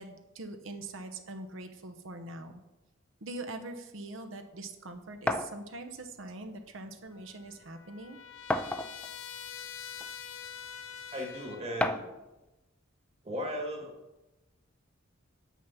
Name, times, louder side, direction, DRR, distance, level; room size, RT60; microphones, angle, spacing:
voice 1, 0.0-2.5 3.2-8.2, right 2 dB, 70° right, 6 dB, 0.9 m, -43 dB
sound 1, 5.3-5.5 6.7-6.8 7.2-7.3 8.5-9.1 10.0-10.1 11.8-12.2, left 1 dB, 5° left, 0.3 m, -30 dB
Trumpet, 7.1-11.8, left 8 dB, 85° left, 0.6 m, -45 dB
voice 2, 11.1-12.1 13.2-13.9, equal, 35° right, 2 dB, 1.6 m, -36 dB
6.9 x 6.3 x 5.7 m, 1.0 s
head